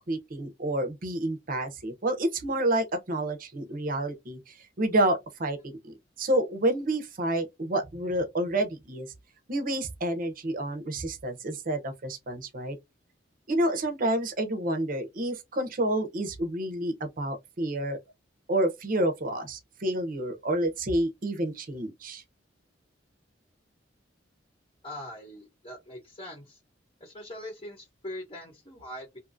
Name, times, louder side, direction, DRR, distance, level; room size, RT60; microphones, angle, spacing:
voice 1, 0.1-5.6 5.8-9.1 9.5-12.8 13.5-18.0 18.5-22.2, right 1 dB, 50° right, 0.7 m, -29 dB
voice 2, 24.8-26.6 27.0-29.2, left 1 dB, 30° left, 0.9 m, -42 dB
2.7 x 2.4 x 2.5 m
head